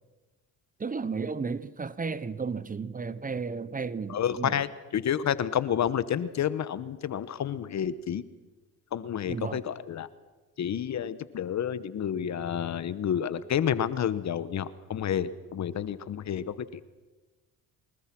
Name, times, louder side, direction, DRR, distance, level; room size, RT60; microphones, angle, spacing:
voice 1, 0.8-4.6 9.3-9.6, right 5 dB, 25° right, 1.0 m, -33 dB
voice 2, 4.1-8.2 8.9-10.1 10.6-16.8, left 9 dB, 50° left, 1.2 m, -30 dB
24.0 x 20.5 x 6.1 m
cardioid pair, 80°, 34 cm